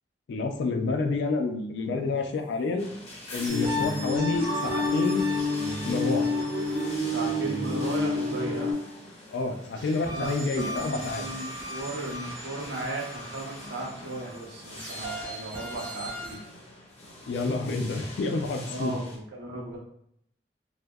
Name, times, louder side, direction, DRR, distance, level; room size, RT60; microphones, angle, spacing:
voice 1, 0.3-2.9 3.3-5.3 5.8-6.3 9.3-11.2 17.3-19.0, left 3 dB, 75° left, 5 dB, 0.3 m, -28 dB
sound 1, 2.8-19.2, left 1 dB, 40° left, 0.7 m, -44 dB
sound 2, 3.3-8.9 9.7-16.4, left 1 dB, 50° right, 0.8 m, -39 dB
sound 3, 3.5-8.7, left 2 dB, 25° right, 0.5 m, -28 dB
voice 2, 7.0-8.7 10.1-16.4 18.7-19.8, right 2 dB, 85° right, -2 dB, 0.7 m, -36 dB
2.7 x 2.0 x 2.2 m, 0.71 s
head